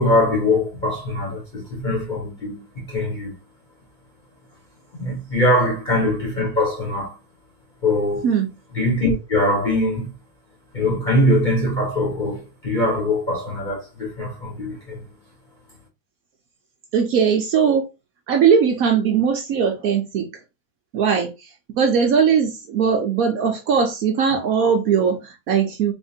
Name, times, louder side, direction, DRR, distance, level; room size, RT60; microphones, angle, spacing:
voice 1, 0.0-3.3 4.9-7.2 7.8-8.3 8.7-10.1 10.7-15.0, left 1 dB, 40° left, 0.6 m, -22 dB
voice 2, 16.9-17.9 18.3-20.3 20.9-25.9, right 6 dB, 90° right, 0.7 m, -19 dB
3.7 x 3.3 x 2.7 m
omnidirectional pair, 2.3 m